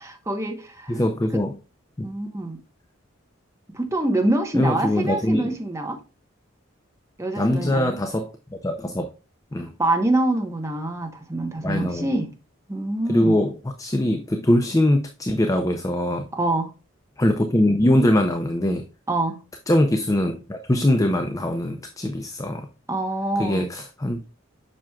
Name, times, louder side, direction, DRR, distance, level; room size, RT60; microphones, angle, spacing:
voice 1, 0.0-1.0 2.0-2.6 3.7-6.0 7.2-8.0 9.8-12.3 12.7-13.4 16.3-16.7 19.1-19.4 22.9-23.7, right 1 dB, 15° right, 1.0 m, -25 dB
voice 2, 0.9-1.6 2.0-2.1 4.5-5.5 7.4-9.1 9.5-9.7 11.6-12.1 13.1-16.3 17.2-18.9 19.7-22.7 23.4-24.3, left 1 dB, 15° left, 0.5 m, -22 dB
7.5 x 6.1 x 2.3 m
head